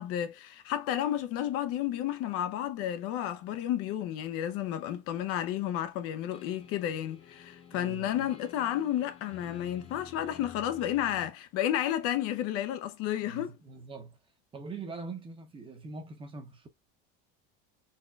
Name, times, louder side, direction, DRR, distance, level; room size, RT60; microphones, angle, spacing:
voice 1, 0.0-13.6, left 11 dB, 50° left, 0.6 m, -32 dB
sound 1, 6.3-11.3, left 7 dB, 20° left, 0.8 m, -51 dB
voice 2, 7.7-8.3 13.2-14.2 14.5-16.7, right 4 dB, 15° right, 0.8 m, -43 dB
4.2 x 3.5 x 2.3 m
cardioid pair, 170°, 30 cm